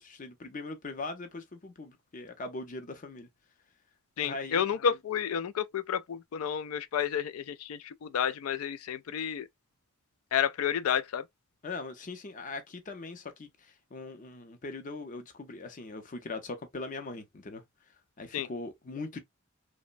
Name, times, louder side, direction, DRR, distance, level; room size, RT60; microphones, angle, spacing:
voice 1, 0.0-3.3 4.2-4.6 11.6-17.6 18.2-19.2, left 3 dB, 40° left, 0.6 m, -40 dB
voice 2, 4.2-9.5 10.3-11.2 18.3-18.5, left 8 dB, 85° left, 0.4 m, -30 dB
2.9 x 2.1 x 2.5 m
head